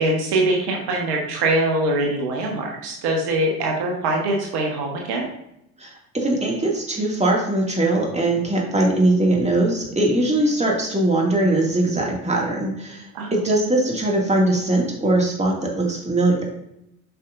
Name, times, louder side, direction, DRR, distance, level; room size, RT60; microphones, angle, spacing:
voice 1, 0.0-5.3 13.1-13.3, right 2 dB, 60° right, 0 dB, 1.5 m, -23 dB
voice 2, 5.8-13.0 13.3-16.5, right 2 dB, 15° right, -1 dB, 2.3 m, -21 dB
8.2 x 5.8 x 2.6 m, 0.80 s
figure-of-eight pair, 50°, 44 cm